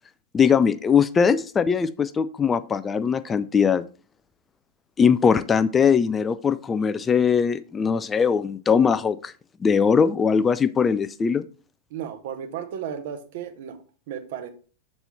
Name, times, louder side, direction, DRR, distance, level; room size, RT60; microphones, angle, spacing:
voice 1, 0.3-3.8 5.0-9.3 9.6-11.4, left 6 dB, 20° left, 14 dB, 0.3 m, -21 dB
voice 2, 11.9-13.8 14.1-14.5, right 9 dB, 55° right, 8 dB, 0.9 m, -34 dB
6.7 x 4.2 x 4.4 m, 0.38 s
figure-of-eight pair, 90°, 0 cm